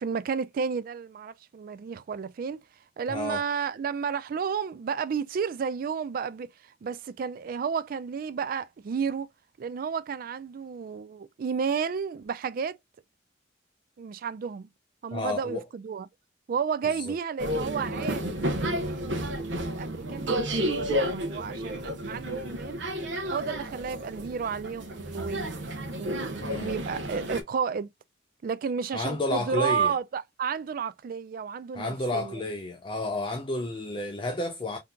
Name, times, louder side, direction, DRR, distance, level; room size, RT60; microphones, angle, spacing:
voice 1, 0.0-2.6 3.0-9.3 9.6-12.8 14.0-14.7 15.0-16.1 16.5-22.8 23.3-25.6 26.0-27.9 28.4-32.4, right 6 dB, 50° right, 0.3 m, -32 dB
voice 2, 3.1-3.4 15.1-15.6 17.1-17.2 26.4-26.7 28.9-29.9 31.7-34.8, left 1 dB, 25° left, 0.5 m, -31 dB
sound 1, 17.4-27.4, equal, 75° right, 0.8 m, -31 dB
3.6 x 2.7 x 2.2 m
head